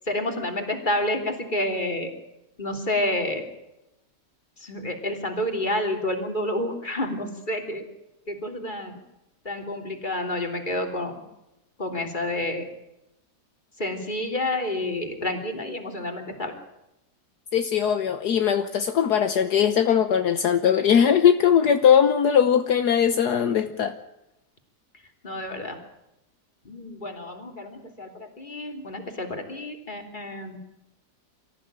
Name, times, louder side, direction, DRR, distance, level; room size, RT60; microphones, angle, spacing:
voice 1, 0.1-2.1 2.6-3.4 4.6-7.8 8.3-9.0 9.5-11.2 11.8-12.7 13.8-16.5 25.2-25.8 26.7-30.6, left 1 dB, 25° left, 4 dB, 3.4 m, -29 dB
voice 2, 17.5-24.0, left 8 dB, 70° left, 8 dB, 1.5 m, -20 dB
24.5 x 15.0 x 8.9 m, 0.90 s
omnidirectional pair, 1.8 m